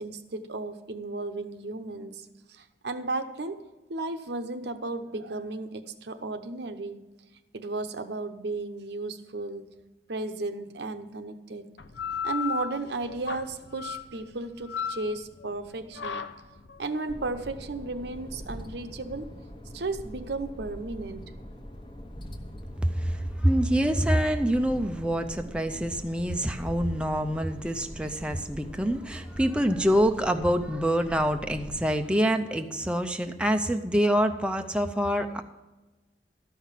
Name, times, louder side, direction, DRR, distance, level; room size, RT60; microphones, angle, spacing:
voice 1, 0.0-3.6 3.9-7.0 7.5-9.6 10.1-11.7 12.2-16.2 16.8-19.4 19.7-21.4, right 3 dB, 70° right, 9 dB, 0.8 m, -34 dB
sound 1, 11.8-21.0, left 7 dB, 85° left, 0.7 m, -37 dB
sound 2, 17.1-31.9, equal, 30° left, 1.0 m, -43 dB
voice 2, 22.8-35.4, equal, 5° right, 5 dB, 0.5 m, -26 dB
13.0 x 5.8 x 7.3 m, 1.1 s
head